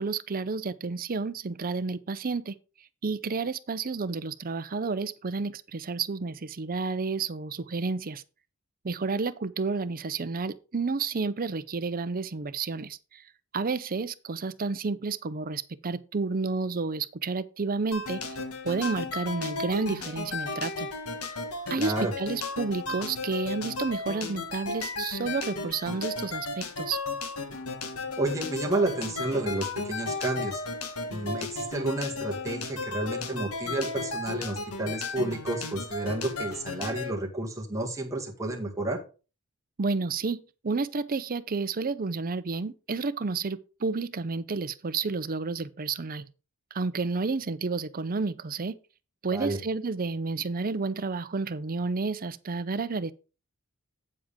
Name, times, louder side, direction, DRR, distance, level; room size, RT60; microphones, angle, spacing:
voice 1, 0.0-2.6 3.0-8.2 8.8-13.2 13.5-18.4 18.6-20.9 21.7-27.0 39.8-46.3 46.7-48.8 49.2-53.1, right 4 dB, 40° right, 0.6 m, -31 dB
sound 1, 17.9-37.1, left 3 dB, 75° left, 1.4 m, -35 dB
voice 2, 21.8-22.1 28.2-30.6 31.1-39.0 49.3-49.6, right 2 dB, 15° right, 1.8 m, -31 dB
8.7 x 7.7 x 3.7 m
head